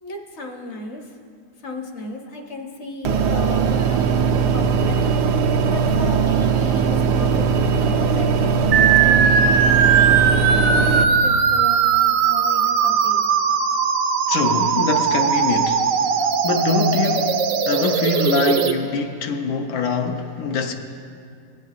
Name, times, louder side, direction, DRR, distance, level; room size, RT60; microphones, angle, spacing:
voice 1, 0.0-1.0 1.6-5.0 5.7-9.6 10.3-13.2, left 2 dB, 50° left, 1.0 m, -34 dB
sound 1, 3.0-11.0, right 6 dB, 90° right, 1.2 m, -19 dB
sound 2, 8.7-18.7, right 6 dB, 70° right, 0.9 m, -19 dB
voice 2, 14.3-15.8 16.2-17.4 17.7-20.7, left 4 dB, 75° left, 1.1 m, -23 dB
18.0 x 8.2 x 2.5 m
omnidirectional pair, 1.7 m